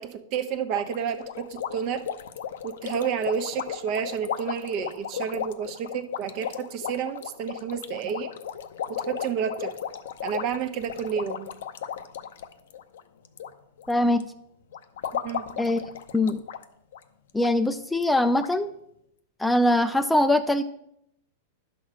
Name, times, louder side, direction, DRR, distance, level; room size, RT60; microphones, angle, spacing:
voice 1, 0.0-2.0 2.6-8.3 9.1-9.7 10.2-11.5 15.1-15.4, right 8 dB, 45° right, 9 dB, 1.0 m, -30 dB
sound 1, 0.7-13.5 13.8-14.2 14.7-16.6 16.9-17.0 17.4-17.5 18.0-18.1 18.4-18.5, left 9 dB, 80° left, 0.7 m, -35 dB
voice 2, 13.9-14.2 15.6-15.8 16.1-16.4 17.3-18.7 19.4-20.6, left 1 dB, 5° left, 9 dB, 0.4 m, -22 dB
10.5 x 6.3 x 4.8 m, 0.77 s
hypercardioid pair, 125°, 0 cm